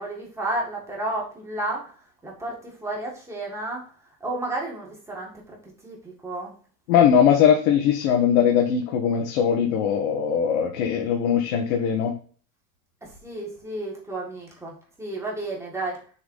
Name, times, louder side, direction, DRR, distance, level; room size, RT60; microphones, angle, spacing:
voice 1, 0.0-3.8 4.2-6.5 13.0-16.0, right 2 dB, 5° right, -2 dB, 1.8 m, -32 dB
voice 2, 6.9-12.1, left 8 dB, 80° left, 2 dB, 1.3 m, -20 dB
6.9 x 4.0 x 5.4 m, 0.41 s
cardioid pair, 175°, 41 cm